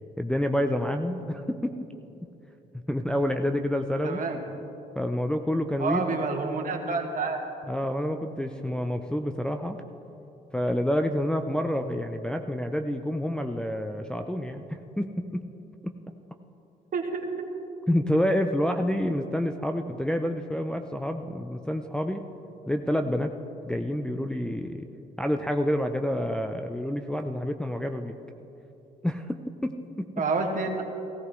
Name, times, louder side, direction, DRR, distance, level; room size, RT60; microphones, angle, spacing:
voice 1, 0.2-1.8 2.7-4.2 5.0-6.1 7.7-9.8 10.5-15.4 15.8-16.0 17.9-22.2 22.7-23.3 23.6-24.8 25.2-28.2 29.0-30.2, equal, 5° left, 4 dB, 0.6 m, -28 dB
voice 2, 4.0-4.4 5.8-7.4 16.9-17.5 30.2-30.8, right 4 dB, 45° right, 2 dB, 1.9 m, -28 dB
16.5 x 15.0 x 3.2 m, 2.9 s
supercardioid pair, 65°, 19 cm